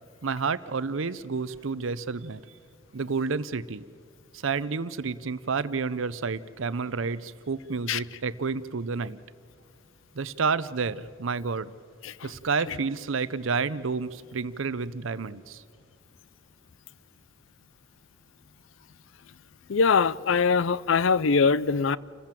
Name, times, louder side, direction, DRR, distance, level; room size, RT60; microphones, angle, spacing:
voice 1, 0.2-2.4 2.9-3.8 4.3-9.2 10.1-11.7 12.2-15.6, right 4 dB, 70° right, 0.6 m, -30 dB
voice 2, 19.7-22.0, left 5 dB, 70° left, 0.5 m, -22 dB
28.5 x 15.0 x 7.6 m
head